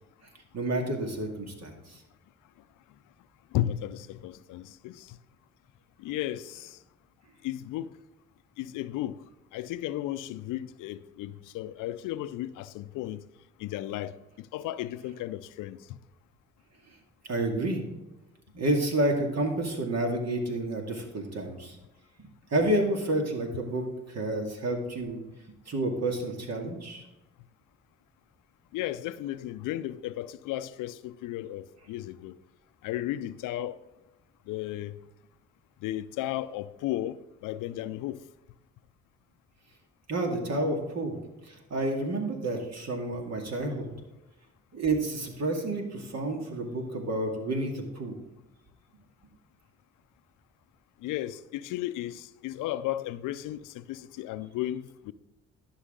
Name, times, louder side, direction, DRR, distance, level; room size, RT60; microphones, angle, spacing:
voice 1, 0.5-2.0 17.2-17.8 18.5-21.8 22.2-25.2 25.7-27.0 40.1-41.2 41.4-43.9 44.7-48.1, right 1 dB, 55° right, 2.2 m, -30 dB
voice 2, 3.5-5.2 6.0-6.8 7.4-8.0 8.6-9.2 9.5-13.2 13.6-15.8 17.5-17.6 28.7-32.4 32.8-33.8 34.5-35.0 35.8-38.2 43.1-43.2 51.0-55.1, left 13 dB, 85° left, 0.5 m, -34 dB
11.5 x 6.2 x 3.7 m
supercardioid pair, 60°, 31 cm